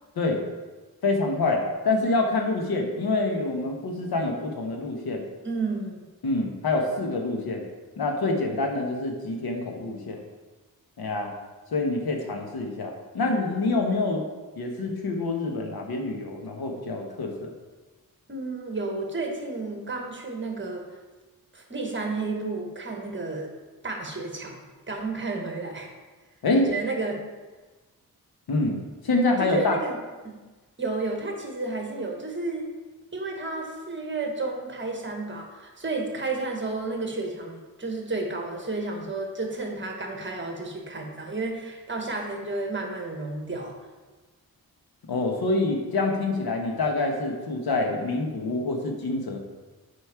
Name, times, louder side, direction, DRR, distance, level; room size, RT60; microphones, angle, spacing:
voice 1, 1.0-5.2 6.2-7.7 8.0-10.2 11.0-11.3 11.7-14.2 14.6-17.5 26.4-26.7 28.5-28.8 29.0-29.8 45.1-49.4, left 2 dB, 80° left, 2 dB, 1.3 m, -26 dB
voice 2, 5.4-6.0 18.3-20.8 21.5-23.5 23.8-25.9 26.7-27.2 29.5-30.0 30.2-30.4 30.8-32.7 33.1-43.7, right 3 dB, 30° right, 2 dB, 1.3 m, -31 dB
8.1 x 5.2 x 4.8 m, 1.3 s
wide cardioid pair, 145°, 36 cm